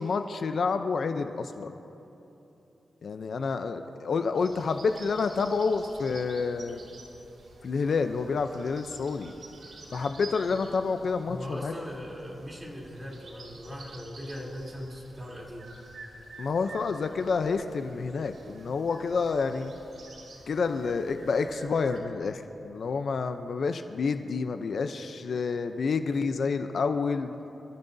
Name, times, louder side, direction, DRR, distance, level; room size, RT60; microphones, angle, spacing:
voice 1, 0.0-1.7 3.0-6.8 7.6-9.3 9.9-11.8 16.4-19.7 20.5-27.3, left 4 dB, 65° left, 8 dB, 0.6 m, -29 dB
sound 1, 4.3-22.0, right 2 dB, 65° right, 3.4 m, -50 dB
voice 2, 11.3-15.7, equal, 10° right, -3 dB, 3.4 m, -39 dB
28.5 x 14.5 x 2.7 m, 3.0 s
cardioid pair, 95°, 0 cm